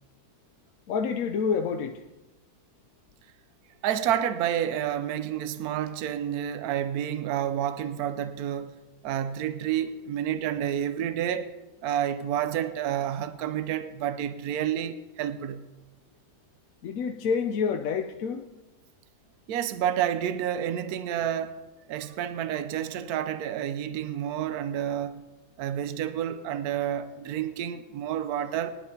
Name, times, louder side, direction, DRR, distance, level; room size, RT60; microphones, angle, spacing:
voice 1, 0.9-2.0 16.8-18.4, left 6 dB, 65° left, 1.0 m, -28 dB
voice 2, 3.8-8.7 9.0-11.5 11.8-15.7 19.5-21.6 21.9-25.2 25.6-28.7, right 10 dB, 75° right, 1.1 m, -29 dB
20.5 x 11.0 x 2.8 m
omnidirectional pair, 1.7 m